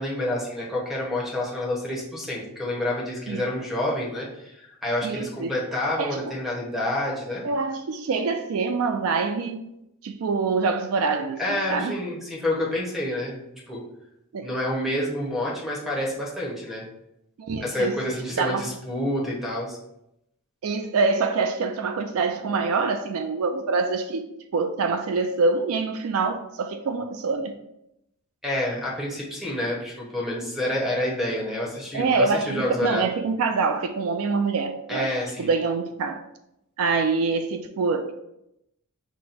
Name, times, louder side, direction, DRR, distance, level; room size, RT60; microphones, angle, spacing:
voice 1, 0.0-7.4 11.4-13.8 14.4-16.8 17.6-19.8 28.4-33.1 34.9-35.5, left 1 dB, ahead, -3 dB, 1.1 m, -28 dB
voice 2, 5.0-5.5 6.0-6.2 7.4-9.7 10.0-12.0 14.3-14.5 17.4-18.0 18.4-18.7 20.6-24.3 24.5-27.6 31.9-36.2 36.8-38.1, right 4 dB, 70° right, 7 dB, 0.4 m, -25 dB
5.9 x 2.1 x 4.1 m, 0.83 s
head